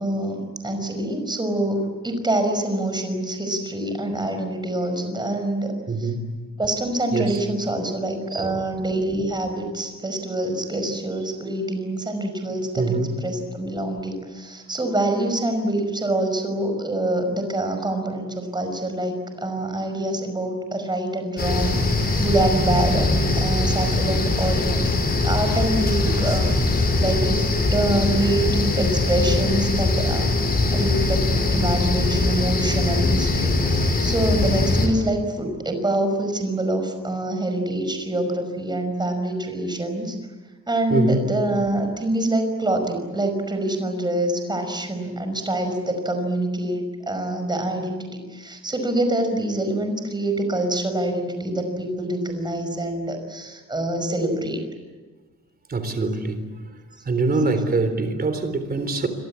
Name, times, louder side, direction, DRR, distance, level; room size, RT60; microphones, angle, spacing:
voice 1, 0.0-5.7 6.0-6.1 6.6-24.8 25.2-27.5 27.7-30.3 30.7-40.2 40.7-54.6, right 1 dB, 15° right, 6 dB, 5.3 m, -25 dB
voice 2, 5.9-6.3 7.1-7.4 8.4-8.7 12.8-13.1 26.0-26.4 40.9-41.3 55.7-56.4 57.1-59.1, right 3 dB, 30° right, 9 dB, 3.9 m, -24 dB
sound 1, 21.4-34.9, left 2 dB, 35° left, 5.1 m, -21 dB
28.0 x 24.0 x 8.5 m, 1.3 s
wide cardioid pair, 165°, 29 cm